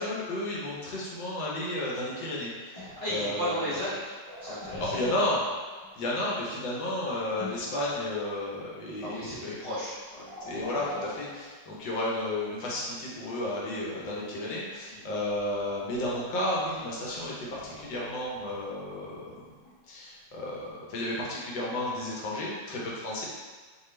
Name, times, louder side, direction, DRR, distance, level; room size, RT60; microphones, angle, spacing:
voice 1, 0.0-3.8 4.8-5.4 6.0-9.6 10.4-19.3 19.9-23.3, left 1 dB, 85° left, -5 dB, 1.7 m, -32 dB
voice 2, 2.7-4.1 4.4-4.9 9.0-10.2 14.9-15.1, equal, 45° left, -11 dB, 1.2 m, -35 dB
sound 1, 2.7-5.9 6.3-6.5 7.4-8.7 8.9-9.3 9.7-12.0 13.4-13.8 14.8-14.9 15.1-19.7 20.6-20.7, left 1 dB, 20° left, 1.2 m, -46 dB
5.0 x 3.0 x 3.2 m, 1.4 s
omnidirectional pair, 1.9 m